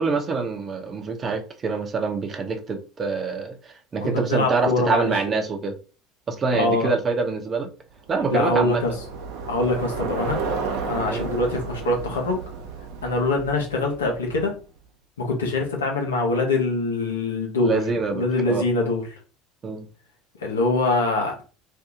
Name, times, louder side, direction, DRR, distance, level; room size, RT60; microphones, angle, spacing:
voice 1, 0.0-5.8 6.3-7.7 8.1-8.8 11.1-11.3 17.6-18.6 19.6-19.9, right 4 dB, 35° right, 0.8 m, -25 dB
voice 2, 4.0-5.1 6.5-6.9 8.3-8.9 9.5-10.4 10.8-12.4 13.0-14.5 15.2-17.8 18.1-19.0 20.4-21.4, left 2 dB, 85° left, 0.9 m, -23 dB
Bicycle, 8.1-14.6, right 4 dB, 65° right, 0.6 m, -32 dB
2.8 x 2.7 x 3.6 m
hypercardioid pair, 70°, 0 cm